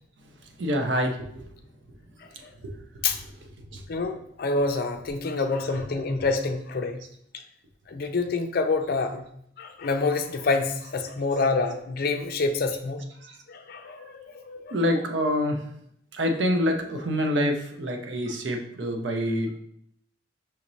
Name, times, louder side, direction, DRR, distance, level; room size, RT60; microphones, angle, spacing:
voice 1, 0.4-1.4 2.6-2.8 3.6-3.8 13.2-13.4 14.7-15.6 16.1-19.6, equal, 70° right, 4 dB, 0.6 m, -26 dB
voice 2, 3.9-7.0 7.9-9.3 9.6-13.0 13.5-14.8, left 3 dB, 55° left, 5 dB, 0.4 m, -27 dB
5.7 x 2.7 x 3.0 m, 0.70 s
head